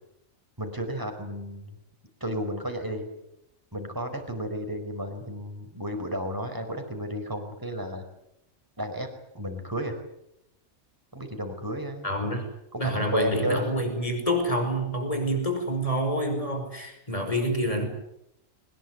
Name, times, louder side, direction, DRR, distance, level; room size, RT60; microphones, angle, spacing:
voice 1, 0.6-1.7 2.2-3.1 3.7-8.0 8.8-9.1 9.3-10.0 11.1-12.1 12.7-13.8, equal, 15° right, 5 dB, 4.8 m, -32 dB
voice 2, 12.0-12.5 12.8-17.9, equal, 25° left, 5 dB, 5.7 m, -27 dB
23.0 x 20.5 x 9.4 m, 0.81 s
omnidirectional pair, 1.4 m